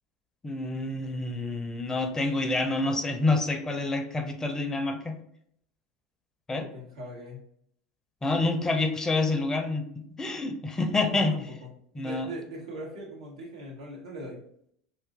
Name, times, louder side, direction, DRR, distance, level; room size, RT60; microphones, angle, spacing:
voice 1, 0.4-5.2 6.5-6.7 8.2-11.4 11.9-12.3, left 2 dB, 20° left, 5 dB, 0.5 m, -28 dB
voice 2, 6.6-7.4 11.0-11.7 12.0-14.4, equal, 85° right, -3 dB, 1.0 m, -40 dB
2.7 x 2.4 x 3.5 m, 0.69 s
hypercardioid pair, 85°, 3 cm